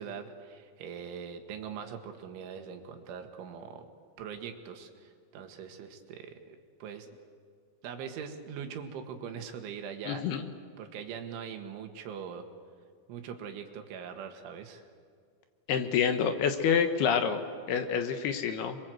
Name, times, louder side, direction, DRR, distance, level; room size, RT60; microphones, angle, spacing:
voice 1, 0.0-3.9 4.2-7.1 7.8-10.2 10.8-12.5 13.1-14.8, right 7 dB, 90° right, 5 dB, 4.2 m, -42 dB
voice 2, 10.1-10.4 15.7-18.8, left 7 dB, 70° left, 7 dB, 2.9 m, -28 dB
27.0 x 23.5 x 7.9 m, 2.1 s
omnidirectional pair, 5.3 m